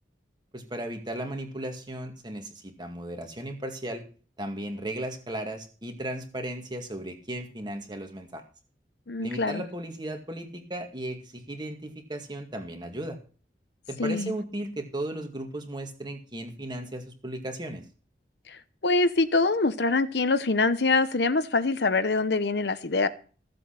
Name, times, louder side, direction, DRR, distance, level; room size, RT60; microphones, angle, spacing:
voice 1, 0.5-4.0 4.4-8.4 9.2-13.2 13.9-17.8, right 1 dB, 25° right, 2.1 m, -36 dB
voice 2, 9.1-9.6 14.0-14.3 18.8-23.1, left 3 dB, 70° left, 0.9 m, -24 dB
15.0 x 7.7 x 5.9 m
head